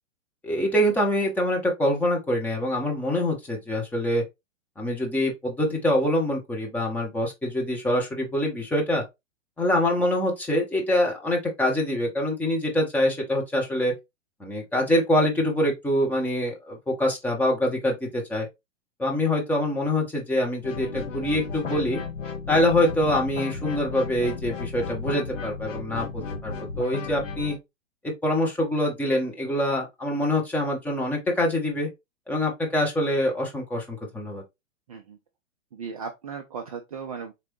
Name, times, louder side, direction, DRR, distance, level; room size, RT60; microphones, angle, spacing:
voice 1, 0.4-4.2 4.8-9.0 9.6-13.9 14.4-18.5 19.0-22.0 22.5-27.6 28.0-31.9 32.3-34.4, left 1 dB, 5° left, 0.7 m, -25 dB
sound 1, 20.6-27.6, left 4 dB, 75° left, 1.1 m, -34 dB
voice 2, 35.7-37.3, right 6 dB, 30° right, 0.4 m, -36 dB
4.1 x 3.0 x 3.0 m
figure-of-eight pair, 110°, 38 cm